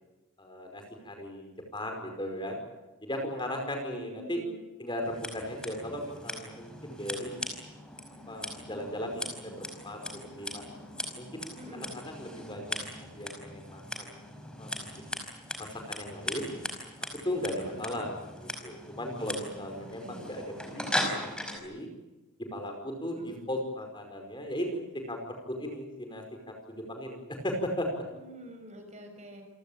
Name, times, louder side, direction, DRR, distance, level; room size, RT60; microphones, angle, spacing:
voice 1, 0.4-2.6 3.0-4.4 4.8-7.4 8.3-10.6 11.2-14.2 14.6-14.8 15.6-16.5 17.2-18.1 18.6-21.9 22.4-28.0, left 1 dB, 20° left, 4 dB, 5.1 m, -37 dB
voice 2, 3.8-4.6 11.6-11.9 17.7-18.0 19.1-20.3 23.2-23.3 28.1-29.4, equal, 30° right, 4 dB, 6.6 m, -47 dB
Scissors, 5.0-21.6, left 1 dB, 5° left, 5.0 m, -39 dB
28.5 x 18.5 x 8.9 m, 1.1 s
head